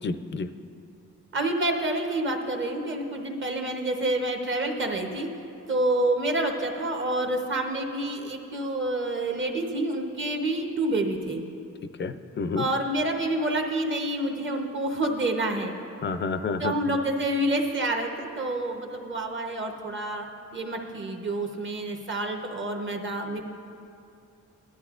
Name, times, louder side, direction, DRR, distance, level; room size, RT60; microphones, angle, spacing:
voice 1, 0.0-0.5 12.0-12.6 16.0-16.7, left 4 dB, 40° left, 10 dB, 0.4 m, -29 dB
voice 2, 1.3-5.3 5.7-11.4 12.5-15.8 16.6-23.4, right 1 dB, 40° right, 3 dB, 0.9 m, -28 dB
17.5 x 11.5 x 2.5 m, 2.6 s
wide cardioid pair, 165°, 31 cm